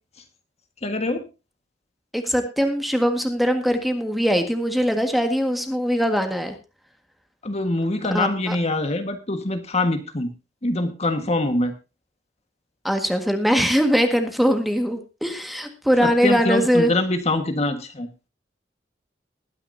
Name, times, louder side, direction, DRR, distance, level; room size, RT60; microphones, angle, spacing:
voice 1, 0.8-1.2 7.4-10.3 10.6-11.7 16.0-18.1, left 2 dB, 35° left, 7 dB, 1.6 m, -24 dB
voice 2, 2.1-6.5 8.1-8.6 12.8-16.9, equal, ahead, 6 dB, 1.7 m, -21 dB
20.5 x 9.9 x 2.7 m, 0.29 s
head